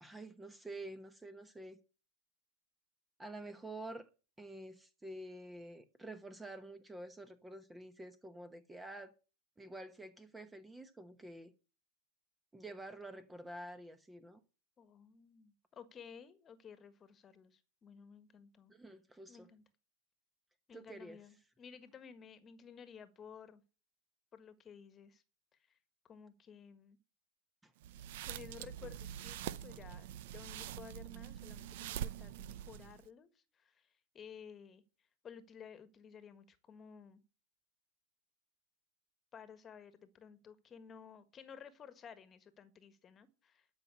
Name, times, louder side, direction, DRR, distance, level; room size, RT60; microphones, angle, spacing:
voice 1, 0.0-1.8 3.2-4.1 4.4-9.1 9.6-11.5 12.5-14.4 18.7-19.5 20.7-21.2 27.6-27.7, right 1 dB, 10° right, 1.1 m, -49 dB
voice 2, 14.8-18.7 19.3-19.6 20.7-23.6 24.3-25.2 25.7-25.8 26.0-27.0 28.2-34.8 35.2-37.2 39.3-43.8, left 7 dB, 25° left, 1.5 m, -55 dB
sound 1, 27.8-33.1, right 11 dB, 65° right, 0.6 m, -44 dB
12.5 x 5.8 x 8.4 m
hypercardioid pair, 120°, 0 cm